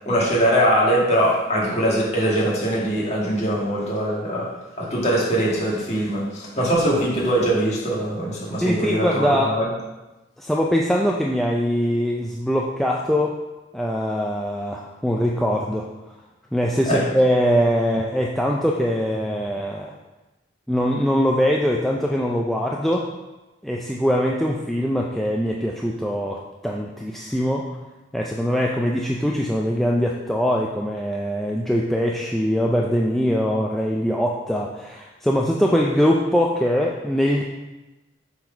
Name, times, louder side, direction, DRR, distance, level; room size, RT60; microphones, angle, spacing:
voice 1, 0.1-9.7 16.9-17.1, right 1 dB, 35° left, -5 dB, 1.8 m, -22 dB
voice 2, 8.6-9.6 10.4-13.4 13.7-15.9 16.5-19.9 20.7-23.1 23.6-27.7 28.1-37.4, equal, ahead, -2 dB, 0.4 m, -22 dB
7.1 x 4.1 x 5.1 m, 1.1 s
head